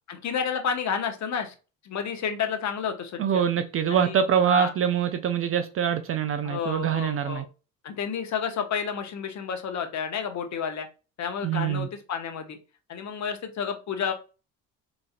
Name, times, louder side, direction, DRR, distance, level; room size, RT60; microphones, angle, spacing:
voice 1, 0.1-1.5 1.8-3.4 3.9-4.7 6.4-7.4 7.8-10.9 11.2-12.6 12.9-14.1, left 7 dB, 45° left, 0.9 m, -30 dB
voice 2, 3.2-7.4 11.4-11.9, right 8 dB, 35° right, 0.4 m, -24 dB
4.0 x 2.6 x 2.4 m
hypercardioid pair, 65°, 39 cm